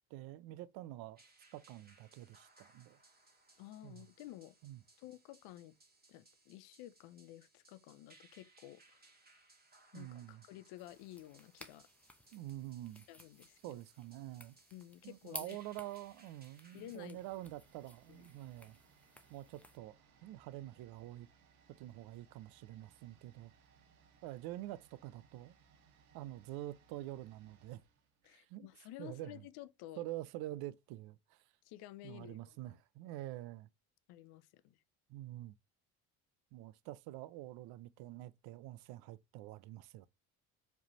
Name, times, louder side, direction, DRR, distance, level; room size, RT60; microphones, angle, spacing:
voice 1, 0.1-1.2 1.5-3.0 3.8-4.1 4.6-4.8 9.9-10.4 12.3-13.1 13.6-14.5 15.0-18.8 19.3-20.0 20.2-21.3 21.8-23.5 24.2-25.6 26.1-27.8 28.3-28.7 29.0-29.5 30.0-31.4 32.0-33.7 35.1-35.5 36.5-40.1, right 15 dB, 60° right, 0.6 m, -47 dB
sound 1, 1.2-17.0, right 3 dB, 20° right, 2.0 m, -67 dB
voice 2, 3.6-4.5 5.0-5.7 6.1-9.0 9.9-11.9 13.1-13.8 14.7-15.6 16.7-17.2 18.1-18.2 28.2-30.0 31.6-32.8 34.1-34.8, left 14 dB, 65° left, 0.7 m, -52 dB
sound 2, 10.8-19.8, left 1 dB, 5° left, 0.8 m, -56 dB
sound 3, 17.1-28.9 29.1-29.2, right 6 dB, 85° right, 1.2 m, -68 dB
4.8 x 3.5 x 3.0 m
hypercardioid pair, 65°, 42 cm